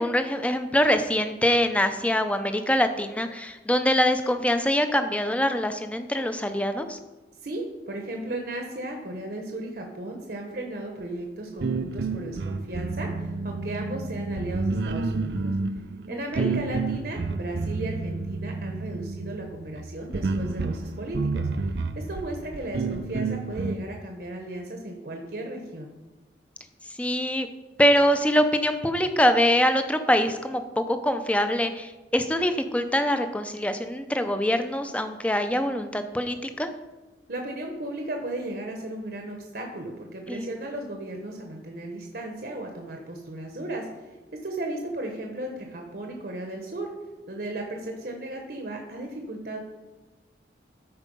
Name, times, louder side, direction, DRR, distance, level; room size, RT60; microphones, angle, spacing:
voice 1, 0.0-7.0 16.1-16.5 27.0-27.5 27.8-36.7 40.3-40.5, equal, 5° left, 8 dB, 0.6 m, -24 dB
voice 2, 7.4-15.5 16.1-25.9 37.3-44.2 44.4-46.9 47.3-49.6, right 1 dB, 55° right, 2 dB, 1.1 m, -35 dB
sound 1, 11.6-23.7, right 3 dB, 70° right, 0.5 m, -30 dB
13.5 x 4.7 x 5.4 m, 1.1 s
head